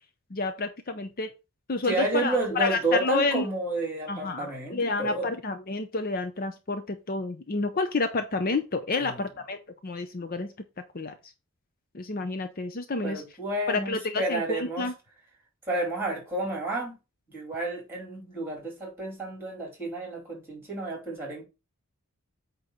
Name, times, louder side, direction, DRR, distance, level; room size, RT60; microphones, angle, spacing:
voice 1, 0.3-1.3 1.7-3.4 4.1-9.6 9.8-10.5 10.9-11.1 11.9-13.2 13.7-14.9, left 3 dB, 40° left, 0.7 m, -29 dB
voice 2, 1.8-5.3 9.0-9.3 13.0-14.9 15.7-17.0 17.3-21.5, right 2 dB, 10° right, 4.6 m, -31 dB
8.6 x 3.0 x 6.4 m
head